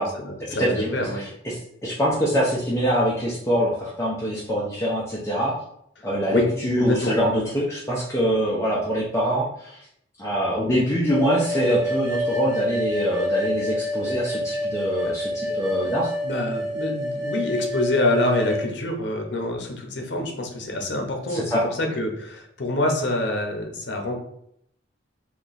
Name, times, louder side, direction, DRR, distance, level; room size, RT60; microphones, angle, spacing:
voice 1, 0.0-1.2 6.3-6.5 6.8-7.2 15.0-15.1 15.4-15.6 16.2-24.1, left 1 dB, 60° left, 2 dB, 0.7 m, -26 dB
voice 2, 0.6-5.5 6.0-9.9 10.2-16.1 21.3-21.6, equal, 15° left, -6 dB, 0.5 m, -24 dB
sound 1, 11.1-18.7, left 1 dB, 70° right, 1.1 m, -27 dB
3.0 x 2.3 x 3.9 m, 0.72 s
head